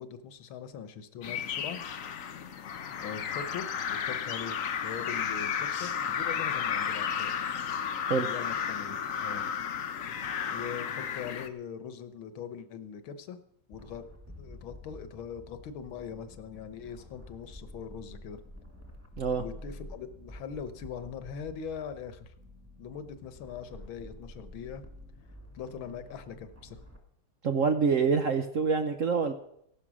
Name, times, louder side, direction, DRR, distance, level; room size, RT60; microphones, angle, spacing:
voice 1, 0.0-1.8 3.0-7.4 8.2-9.5 10.5-13.4 13.7-14.0 14.4-18.4 19.4-22.3 22.8-24.8 25.5-26.8, left 7 dB, 80° left, 11 dB, 1.8 m, -41 dB
sound 1, 1.2-11.5, left 7 dB, 55° left, 1.0 m, -33 dB
sound 2, 13.7-27.0, left 1 dB, 5° right, 2.1 m, -49 dB
voice 2, 27.4-29.3, right 5 dB, 60° right, 8 dB, 0.9 m, -26 dB
16.0 x 11.5 x 6.2 m, 0.76 s
omnidirectional pair, 2.2 m